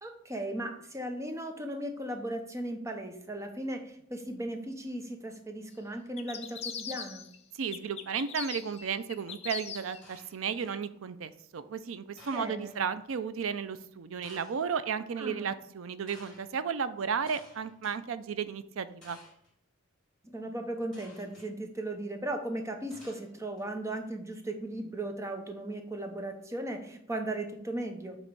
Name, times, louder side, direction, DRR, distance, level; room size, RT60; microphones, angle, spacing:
voice 1, 0.0-7.2 12.3-12.8 15.2-15.6 20.2-28.2, right 1 dB, 15° right, 5 dB, 0.8 m, -37 dB
sound 1, 6.2-7.4 7.7-10.0, left 7 dB, 30° left, 0.5 m, -40 dB
voice 2, 7.6-19.2, right 6 dB, 90° right, 13 dB, 0.5 m, -34 dB
sound 2, 10.0-10.8 12.2-12.8 14.2-14.8 16.1-16.4 17.3-18.0 19.0-19.5 20.9-21.5 22.9-23.6, left 1 dB, 5° left, 2.8 m, -55 dB
7.6 x 3.0 x 5.3 m, 0.69 s
head